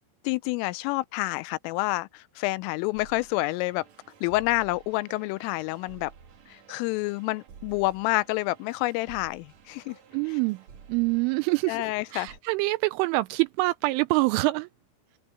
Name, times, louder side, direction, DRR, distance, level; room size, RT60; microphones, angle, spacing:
voice 1, 0.2-3.9 4.2-6.1 6.5-10.0 11.7-12.3, left 20 dB, 85° left, 3.0 m, -28 dB
sound 1, 2.9-12.4, right 7 dB, 60° right, 1.8 m, -52 dB
voice 2, 10.1-10.6 10.9-14.7, right 22 dB, 85° right, 2.9 m, -25 dB
omnidirectional pair, 5.9 m